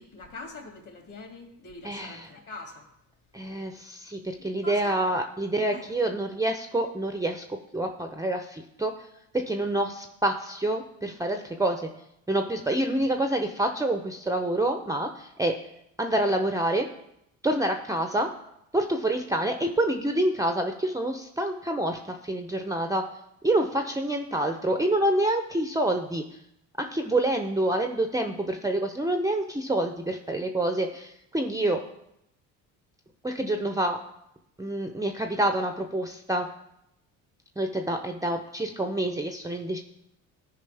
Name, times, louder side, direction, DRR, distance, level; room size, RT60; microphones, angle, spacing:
voice 1, 0.0-2.9 4.6-5.0 5.7-5.9, left 2 dB, 45° left, 0 dB, 3.1 m, -43 dB
voice 2, 1.8-2.3 3.3-7.4 7.7-9.1 9.3-11.9 12.3-15.6 16.0-16.9 17.4-18.3 18.7-23.0 23.4-26.4 26.8-31.8 33.2-34.0 34.6-36.5 37.6-39.8, right 1 dB, 10° right, 5 dB, 0.7 m, -27 dB
14.0 x 5.0 x 3.4 m, 0.82 s
hypercardioid pair, 65°, 42 cm